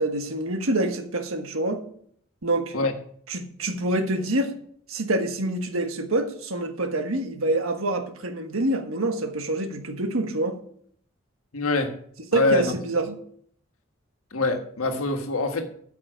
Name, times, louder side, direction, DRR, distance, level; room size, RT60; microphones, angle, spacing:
voice 1, 0.0-1.8 2.4-2.7 3.3-4.5 4.9-10.5 12.3-13.2, right 2 dB, 75° right, 1.4 m, -26 dB
voice 2, 11.5-12.0 12.3-12.7 14.3-15.7, left 3 dB, 85° left, 1.5 m, -24 dB
13.5 x 5.8 x 5.1 m
head